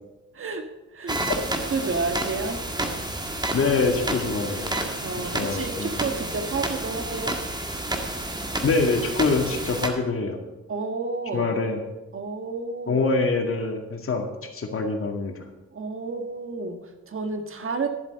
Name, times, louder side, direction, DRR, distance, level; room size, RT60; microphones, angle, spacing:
voice 1, 0.3-0.7 0.9-1.2 1.5-2.6 5.0-7.4 10.7-11.6 12.1-13.0 15.7-17.9, right 4 dB, 45° right, 6 dB, 1.5 m, -30 dB
sound 1, 1.1-9.9, right 1 dB, 15° right, 1.8 m, -30 dB
voice 2, 3.5-4.7 5.3-5.9 8.6-10.4 11.3-11.8 12.9-15.4, left 3 dB, 45° left, 3 dB, 2.1 m, -25 dB
12.0 x 7.5 x 6.4 m, 1.1 s
cardioid pair, 75°, 30 cm